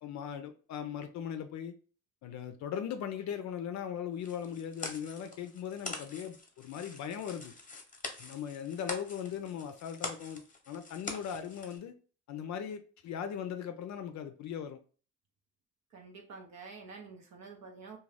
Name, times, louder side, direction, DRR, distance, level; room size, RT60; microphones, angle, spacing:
voice 1, 0.0-1.7 2.2-7.5 8.2-11.9 12.3-14.8, left 8 dB, 65° left, 0.4 m, -39 dB
sound 1, 4.2-11.8, left 3 dB, 25° left, 0.8 m, -44 dB
voice 2, 15.9-18.0, right 4 dB, 65° right, 0.6 m, -48 dB
2.5 x 2.3 x 3.2 m
cardioid pair, 90°, 30 cm